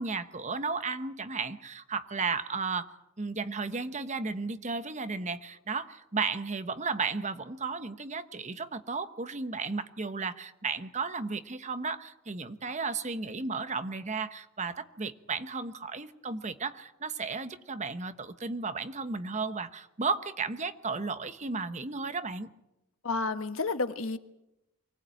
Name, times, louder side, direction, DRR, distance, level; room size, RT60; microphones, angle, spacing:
voice 1, 0.0-2.9 3.2-22.5, right 4 dB, 35° right, 11 dB, 1.1 m, -34 dB
voice 2, 23.0-24.2, left 3 dB, 70° left, 9 dB, 1.4 m, -30 dB
24.5 x 18.5 x 9.0 m, 0.89 s
head